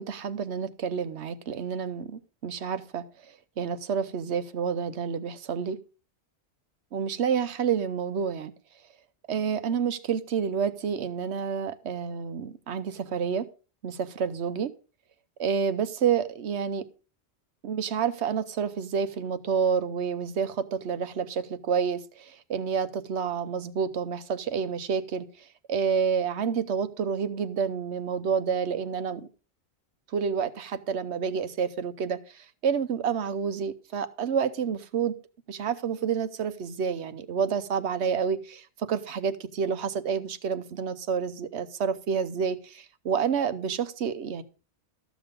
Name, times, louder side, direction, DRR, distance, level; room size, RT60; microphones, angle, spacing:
voice 1, 0.0-3.0 3.6-5.8 6.9-8.5 9.3-13.5 13.8-14.7 15.4-16.8 17.6-25.3 25.7-29.2 30.1-35.1 35.5-44.4, right 6 dB, 75° right, 13 dB, 1.1 m, -29 dB
13.5 x 6.2 x 5.1 m, 0.35 s
omnidirectional pair, 1.2 m